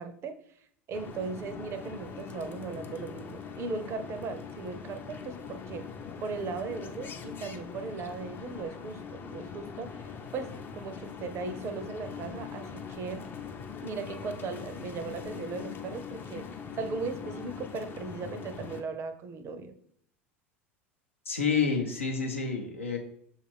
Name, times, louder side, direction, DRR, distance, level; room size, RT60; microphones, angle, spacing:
voice 1, 0.0-5.9 6.2-13.2 13.8-16.5 16.8-19.7, right 4 dB, 40° right, 10 dB, 0.5 m, -38 dB
sound 1, 0.9-18.8, left 6 dB, 30° left, 0.5 m, -42 dB
voice 2, 21.3-23.0, left 5 dB, 85° left, 1 dB, 0.7 m, -29 dB
6.3 x 2.4 x 3.4 m, 0.65 s
figure-of-eight pair, 75°, 7 cm